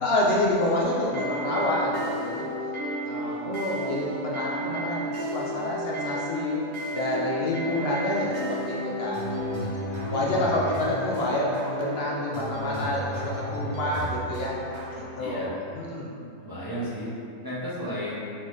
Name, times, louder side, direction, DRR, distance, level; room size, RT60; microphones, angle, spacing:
voice 1, 0.0-2.4 3.0-6.6 6.9-9.3 9.6-9.7 10.1-14.5 15.0-15.5 15.9-16.1, left 1 dB, 60° left, -4 dB, 0.6 m, -28 dB
Calm & relaxing music, 0.8-15.0, equal, 55° right, 1.1 m, -32 dB
voice 2, 10.0-10.9 15.2-15.5 16.4-17.1 17.4-18.2, equal, 20° right, -11 dB, 0.7 m, -34 dB
4.0 x 3.8 x 3.1 m, 2.5 s
omnidirectional pair, 1.6 m